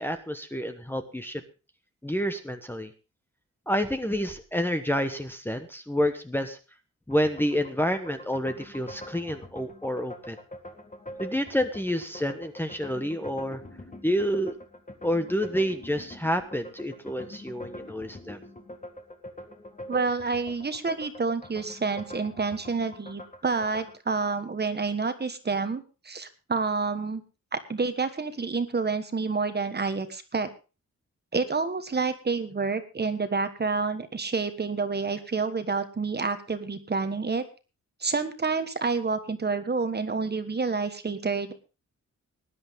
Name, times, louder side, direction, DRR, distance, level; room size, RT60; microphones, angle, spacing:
voice 1, 0.0-1.4 2.0-2.9 3.7-6.6 7.1-10.4 11.2-13.6 14.0-14.5 15.0-18.4, equal, 5° left, 6 dB, 1.1 m, -29 dB
sound 1, 7.1-24.0, left 1 dB, 25° left, 1.7 m, -45 dB
voice 2, 19.9-27.2 27.5-30.5 31.3-37.4 38.0-41.5, right 4 dB, 35° right, 10 dB, 1.4 m, -28 dB
19.0 x 10.5 x 3.6 m, 0.32 s
wide cardioid pair, 145°, 30 cm